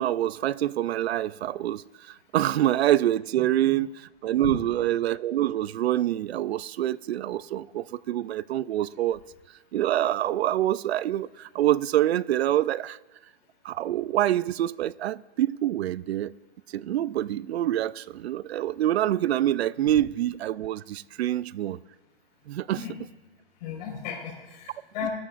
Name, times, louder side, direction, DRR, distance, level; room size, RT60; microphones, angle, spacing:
voice 1, 0.0-9.2 9.7-13.0 13.6-16.3 16.7-21.8 22.5-22.8, right 12 dB, 90° right, 0.5 m, -26 dB
voice 2, 23.6-25.1, left 7 dB, 45° left, 4.5 m, -35 dB
21.0 x 13.0 x 2.5 m
hypercardioid pair, 165°, 31 cm